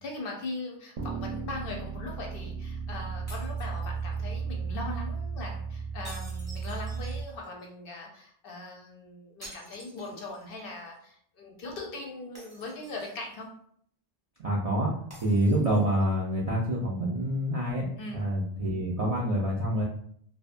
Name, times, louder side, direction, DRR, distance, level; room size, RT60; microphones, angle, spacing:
voice 1, 0.0-13.5 18.0-18.2, left 2 dB, 60° left, 0 dB, 0.7 m, -40 dB
sound 1, 1.0-7.2, right 5 dB, 80° right, 0.9 m, -35 dB
sound 2, 3.3-4.4 6.0-7.6 9.4-10.6 10.9-11.0 12.4-13.4 15.1-16.0, right 1 dB, 15° right, 0.6 m, -50 dB
voice 2, 14.4-14.9 15.2-19.8, right 1 dB, 60° right, -4 dB, 0.4 m, -27 dB
2.7 x 2.2 x 2.5 m, 0.64 s
omnidirectional pair, 1.2 m